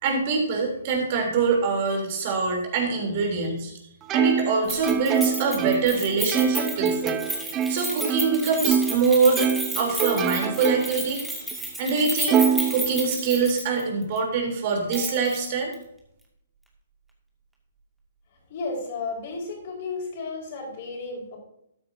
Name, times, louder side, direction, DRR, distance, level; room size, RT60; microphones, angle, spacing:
voice 1, 0.0-3.7 4.1-7.2 7.7-9.5 9.8-11.2 11.8-12.4 12.7-15.7, right 4 dB, 45° right, 1 dB, 3.5 m, -24 dB
Plucked string instrument, 4.1-9.0 9.4-11.1 11.5-11.6 12.3-13.4, right 7 dB, 20° right, 0.7 m, -25 dB
Keys jangling, 4.7-13.8 14.2-14.3 14.9-15.4 15.7-15.8, right 1 dB, 5° right, 2.3 m, -32 dB
voice 2, 18.5-21.4, left 3 dB, 45° left, -1 dB, 4.8 m, -33 dB
13.0 x 9.5 x 2.8 m, 0.78 s
figure-of-eight pair, 130°, 0 cm